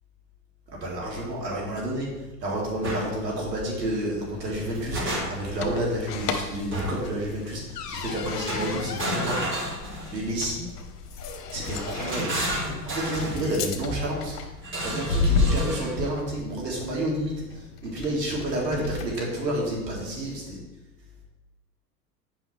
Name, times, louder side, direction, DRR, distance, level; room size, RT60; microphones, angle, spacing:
voice 1, 0.7-2.1 2.4-5.0 5.3-9.5 10.1-10.6 11.5-12.3 12.9-14.4 14.8-20.6, right 1 dB, 85° right, -3 dB, 2.4 m, -30 dB
sound 1, 2.8-3.1 4.5-5.6 6.7-7.1 8.5-10.3 11.6-13.4 14.6-16.0, right 1 dB, 25° right, 2.5 m, -31 dB
sound 2, 4.2-19.3, left 4 dB, 70° left, 1.1 m, -33 dB
8.5 x 5.7 x 3.1 m, 1.1 s
hypercardioid pair, 95°, 49 cm